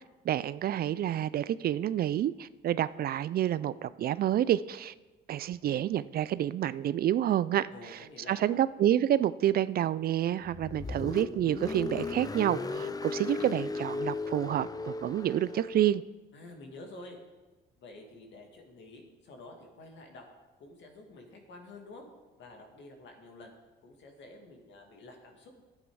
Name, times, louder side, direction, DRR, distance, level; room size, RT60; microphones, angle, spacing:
voice 1, 0.3-4.9 5.3-8.0 8.3-16.0, right 11 dB, 50° right, 18 dB, 0.4 m, -28 dB
voice 2, 7.7-8.6 16.3-17.2 17.8-20.3 20.6-22.0 22.4-23.5 23.8-25.6, left 2 dB, 65° left, 3 dB, 2.1 m, -49 dB
Car, 10.4-15.9, left 3 dB, 20° left, 0.6 m, -36 dB
11.0 x 8.6 x 4.8 m, 1.2 s
supercardioid pair, 80°, 20 cm